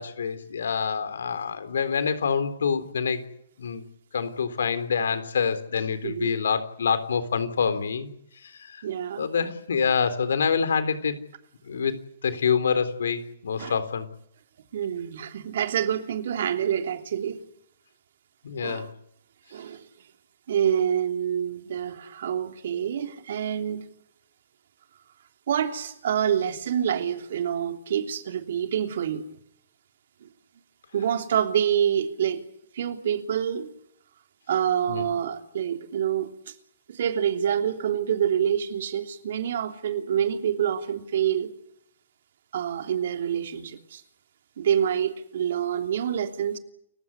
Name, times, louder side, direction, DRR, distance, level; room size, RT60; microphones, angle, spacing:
voice 1, 0.0-3.2 3.6-3.8 4.1-8.1 8.4-8.8 9.2-11.2 11.6-11.9 12.2-14.1 18.4-18.9 34.9-35.1, left 6 dB, 70° left, 12 dB, 3.7 m, -26 dB
voice 2, 6.0-6.3 8.8-9.3 13.6-13.8 14.7-17.4 18.6-18.9 19.5-19.9 20.5-23.9 25.5-29.2 30.9-32.4 32.7-33.7 34.5-36.5 36.9-41.5 42.5-44.0 44.6-46.6, right 9 dB, 60° right, 6 dB, 3.1 m, -27 dB
30.0 x 15.5 x 9.8 m, 0.71 s
figure-of-eight pair, 120°, 0 cm